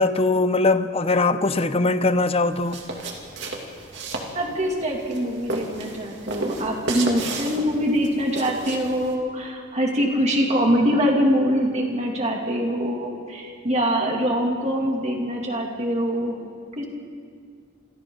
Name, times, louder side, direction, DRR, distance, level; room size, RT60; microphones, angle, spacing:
voice 1, 0.0-2.8, left 3 dB, 30° left, 0.7 m, -21 dB
sound 1, 2.5-9.1, right 2 dB, 55° right, 2.7 m, -33 dB
voice 2, 4.3-16.4 16.8-16.9, equal, 30° right, 2.7 m, -23 dB
27.0 x 26.0 x 4.0 m
head